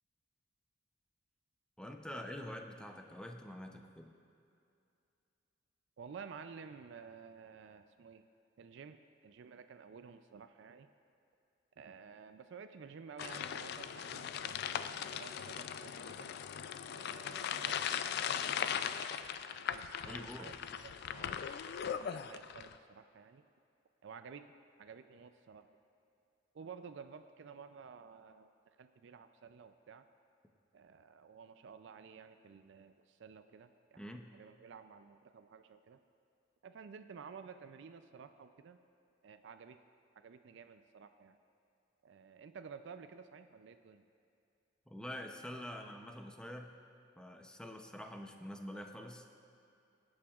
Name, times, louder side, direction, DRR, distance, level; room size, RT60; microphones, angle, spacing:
voice 1, 1.8-4.1 20.0-20.5 34.0-34.3 44.9-46.8 47.2-49.3, equal, 5° left, 3 dB, 0.6 m, -46 dB
voice 2, 6.0-8.2 8.6-10.9 11.8-16.3 16.8-19.0 19.5-21.4 21.7-23.4 24.0-24.5 24.8-25.7 26.5-28.5 28.8-30.1 30.7-36.0 36.6-38.8 39.2-39.8 40.1-41.4 42.0-44.0, right 6 dB, 65° right, 9 dB, 0.4 m, -53 dB
sound 1, 13.2-22.8, left 8 dB, 55° left, 0.3 m, -39 dB
21.5 x 8.6 x 2.4 m, 2.6 s
head